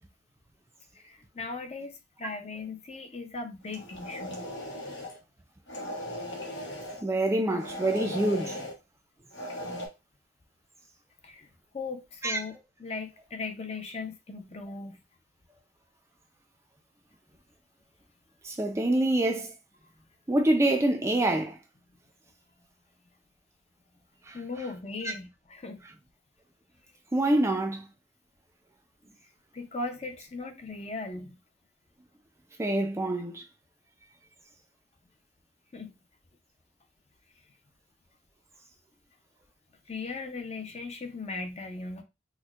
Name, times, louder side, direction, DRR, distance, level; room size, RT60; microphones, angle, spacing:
voice 1, 0.9-4.5 11.2-11.5 11.7-12.5 12.8-15.0 24.3-25.8 29.5-31.4 35.7-36.0 39.9-42.0, left 3 dB, 35° left, 0.6 m, -38 dB
sound 1, 3.7-5.2 5.7-7.0 7.6-8.8 9.3-9.9, left 1 dB, 75° left, 1.0 m, -38 dB
voice 2, 7.0-8.6 12.2-12.4 18.4-19.5 20.3-21.6 24.3-24.4 25.0-25.1 27.1-27.8 32.6-33.4, right 1 dB, 15° right, 0.3 m, -26 dB
4.2 x 2.1 x 2.3 m
head